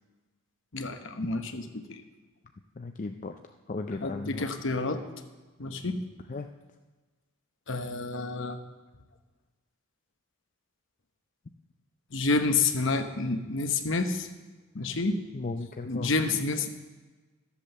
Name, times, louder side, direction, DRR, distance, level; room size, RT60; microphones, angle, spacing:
voice 1, 0.7-2.0 3.9-5.0 5.6-6.0 7.7-8.6 12.1-14.3 14.7-15.2 15.9-16.7, left 3 dB, 55° left, 7 dB, 1.0 m, -29 dB
voice 2, 2.8-4.5 6.3-6.5 15.3-16.1, left 3 dB, 35° left, 6 dB, 0.4 m, -36 dB
12.5 x 8.4 x 6.7 m, 1.3 s
head